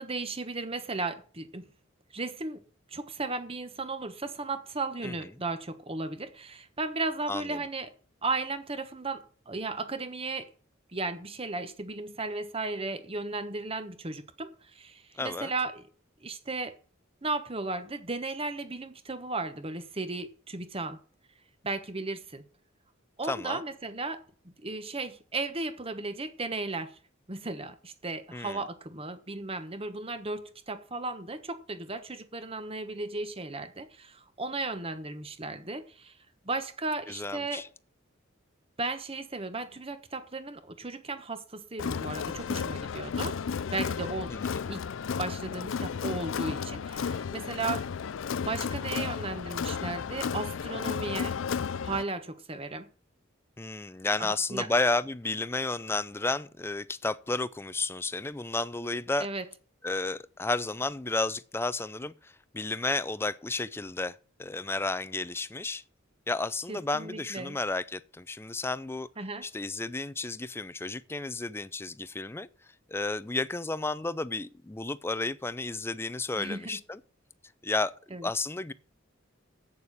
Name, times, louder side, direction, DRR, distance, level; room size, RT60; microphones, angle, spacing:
voice 1, 0.0-1.6 2.1-2.6 2.9-7.9 8.2-10.5 10.9-15.9 16.2-16.7 17.2-21.0 21.6-22.4 23.2-27.0 27.3-36.2 36.4-37.6 38.8-43.4 43.7-44.3 44.7-44.9 45.2-47.9 48.4-51.4 51.8-52.9 54.2-54.7 59.2-59.4 66.7-67.6 69.2-69.5 76.3-76.8 78.1-78.3, right 3 dB, 30° right, 1.1 m, -35 dB
voice 2, 7.3-7.6 15.2-15.5 23.3-23.6 28.3-28.6 37.1-37.7 44.3-44.7 53.6-59.3 59.8-65.8 66.3-69.1 69.4-72.5 72.9-77.0 77.6-78.7, left 3 dB, 10° left, 0.4 m, -32 dB
Crowd, 41.8-52.0, left 6 dB, 70° left, 0.4 m, -33 dB
8.3 x 7.0 x 8.6 m
head